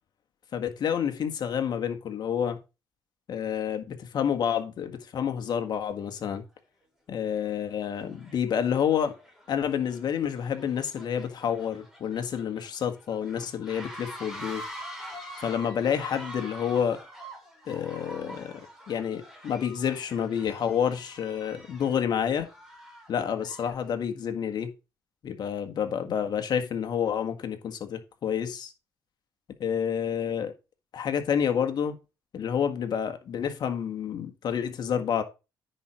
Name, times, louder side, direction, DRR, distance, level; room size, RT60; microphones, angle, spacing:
voice 1, 0.5-2.6 3.3-6.4 7.1-9.1 9.5-14.6 15.4-17.0 17.7-22.5 23.1-24.7 25.2-28.7 29.6-30.5 30.9-31.9 32.3-35.2, left 8 dB, 55° left, 1.7 m, -29 dB
sound 1, 6.5-6.6 7.3-7.6 7.9-23.9, equal, ahead, 3.6 m, -45 dB
9.9 x 4.5 x 5.0 m
cardioid pair, 90°, 8 cm